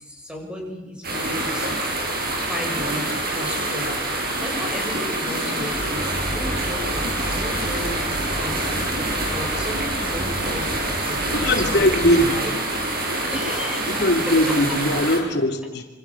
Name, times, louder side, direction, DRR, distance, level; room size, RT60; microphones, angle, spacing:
voice 1, 0.0-1.9 2.4-4.1 4.4-8.8 9.3-12.6 13.2-14.6, equal, 5° right, 2 dB, 6.5 m, -34 dB
sound 1, 1.0-15.2, right 1 dB, 55° right, 6.7 m, -26 dB
sound 2, 5.7-12.9, equal, 35° right, 3.4 m, -32 dB
voice 2, 11.3-12.4 13.9-15.8, left 1 dB, 65° left, 4 dB, 3.1 m, -20 dB
27.5 x 25.5 x 7.3 m, 1.2 s
head